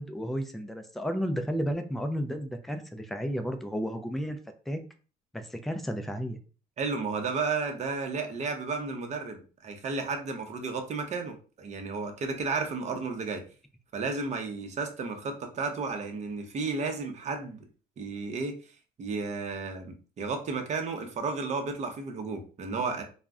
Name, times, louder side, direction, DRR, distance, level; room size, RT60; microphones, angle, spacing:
voice 1, 0.0-4.4 4.7-4.8 5.3-6.4, equal, ahead, 6 dB, 0.3 m, -32 dB
voice 2, 6.8-13.4 13.9-17.7 18.0-18.6 19.0-23.0, right 4 dB, 45° right, 5 dB, 0.7 m, -33 dB
2.4 x 2.1 x 3.4 m, 0.37 s
cardioid pair, 110°, 17 cm